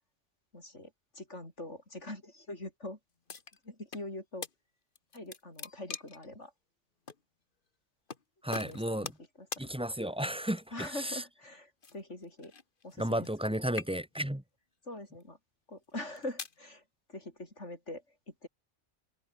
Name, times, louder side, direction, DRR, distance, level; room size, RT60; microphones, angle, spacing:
voice 1, 0.5-3.0 3.6-4.5 5.1-6.5 8.6-9.1 9.4-9.7 10.7-12.5 12.8-13.3 14.8-15.4 15.7-16.8 17.1-18.5, left 1 dB, 75° left, 7.5 m, -43 dB
sound 1, 3.3-4.1 4.4-4.5 5.0-6.3 7.1-7.2 8.1-8.2 8.5-9.3 9.5-9.7 10.4-10.8 11.8-13.4 13.7-14.3 15.0-15.2 15.9-16.6, left 5 dB, 45° left, 1.6 m, -43 dB
voice 2, 8.4-9.1 9.6-11.2 13.0-14.4, right 1 dB, 5° right, 1.4 m, -33 dB
omnidirectional pair, 1.2 m